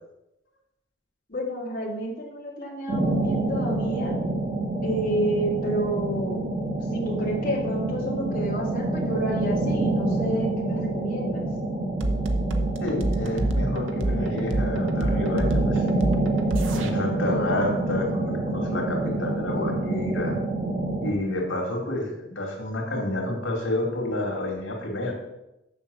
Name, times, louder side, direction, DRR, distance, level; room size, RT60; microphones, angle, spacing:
voice 1, 1.3-4.2 4.8-6.5 6.9-11.4, right 1 dB, 45° left, -4 dB, 2.1 m, -29 dB
sound 1, 2.9-21.1, right 2 dB, 35° right, 1.7 m, -27 dB
sound 2, 12.0-16.9, right 1 dB, 90° right, 1.1 m, -27 dB
voice 2, 12.8-15.8 16.7-20.4 21.0-25.1, left 1 dB, 90° left, 0 dB, 2.5 m, -29 dB
7.2 x 6.6 x 7.0 m, 0.89 s
head